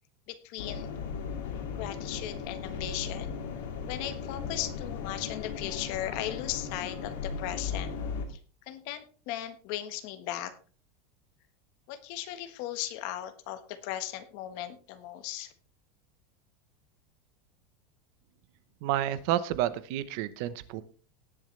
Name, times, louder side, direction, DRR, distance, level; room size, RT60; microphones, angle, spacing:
voice 1, 0.3-0.9 1.7-3.3 3.9-8.0 8.3-8.4 8.7-10.5 11.9-15.5, left 12 dB, 50° left, 9 dB, 1.3 m, -37 dB
sound 1, 0.6-8.3, left 6 dB, 80° left, 2.5 m, -37 dB
voice 2, 18.8-20.8, right 12 dB, 50° right, 15 dB, 0.9 m, -30 dB
18.5 x 7.2 x 3.3 m, 0.38 s
supercardioid pair, 175°, 0 cm